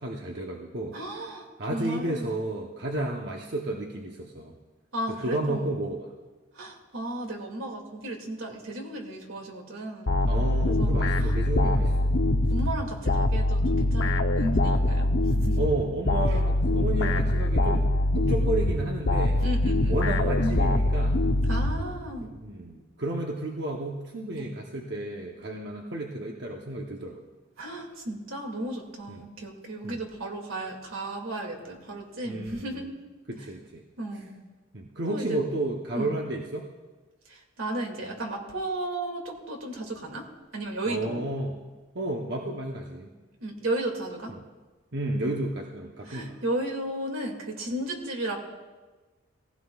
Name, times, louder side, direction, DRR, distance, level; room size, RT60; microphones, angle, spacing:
voice 1, 0.0-1.3 1.6-4.5 5.1-6.1 10.3-12.2 15.6-17.9 18.1-19.4 19.9-21.2 22.2-27.2 29.1-29.3 29.8-30.0 32.2-32.9 33.3-33.8 34.1-34.2 34.7-36.7 40.9-41.6 41.9-43.1 44.9-46.4, right 1 dB, 55° right, 0 dB, 0.9 m, -32 dB
voice 2, 0.9-2.3 4.9-5.7 6.5-10.1 10.7-11.3 11.6-11.9 12.5-15.7 19.4-20.0 21.5-22.3 24.4-24.5 27.6-32.9 34.0-34.3 35.1-35.4 35.9-36.1 37.3-40.2 40.5-41.2 43.4-44.3 46.1-48.4, right 1 dB, 80° right, 1 dB, 2.3 m, -34 dB
sound 1, 10.1-22.3, left 1 dB, 65° left, 0.8 m, -24 dB
19.0 x 16.0 x 2.4 m, 1.3 s
head